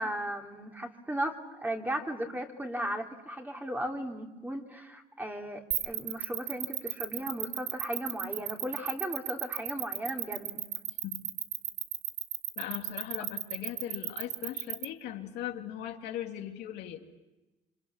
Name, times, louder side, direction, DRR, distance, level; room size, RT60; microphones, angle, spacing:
voice 1, 0.0-10.6, right 1 dB, 10° right, 2 dB, 2.9 m, -36 dB
sound 1, 5.7-14.8, right 14 dB, 85° right, 1.2 m, -34 dB
voice 2, 12.6-17.1, left 11 dB, 80° left, 3 dB, 2.4 m, -39 dB
27.5 x 25.5 x 7.2 m, 1.1 s
cardioid pair, 110°, 17 cm